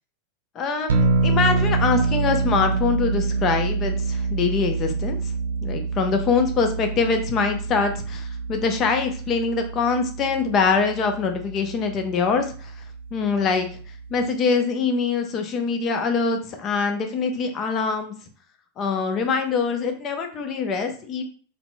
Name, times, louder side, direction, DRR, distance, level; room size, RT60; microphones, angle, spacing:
voice 1, 0.5-5.2 5.6-12.8 13.1-13.7 14.1-18.1 18.8-21.2, left 5 dB, 30° left, 6 dB, 0.6 m, -24 dB
sound 1, 0.9-14.3, right 4 dB, 65° right, 0.4 m, -26 dB
4.0 x 2.7 x 2.2 m, 0.42 s
figure-of-eight pair, 90°, 0 cm